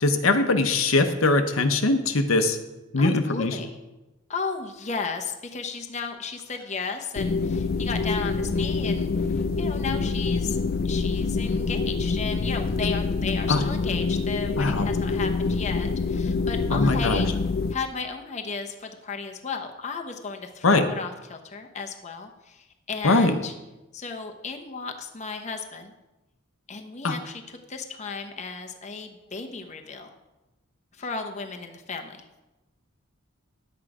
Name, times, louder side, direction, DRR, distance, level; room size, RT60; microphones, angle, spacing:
voice 1, 0.0-2.6 2.9-3.6 13.5-13.6 14.6-14.9 16.7-17.2 20.6-20.8 23.0-23.3 27.0-27.1, left 3 dB, 90° left, 6 dB, 0.9 m, -21 dB
voice 2, 3.0-3.8 4.3-9.1 9.6-10.6 10.8-17.3 17.7-23.5 23.9-25.9 26.7-30.1 31.0-32.2, left 5 dB, 35° left, 4 dB, 0.8 m, -34 dB
sound 1, 7.2-17.7, left 4 dB, 50° left, 0.4 m, -26 dB
10.0 x 8.1 x 4.9 m, 1.0 s
head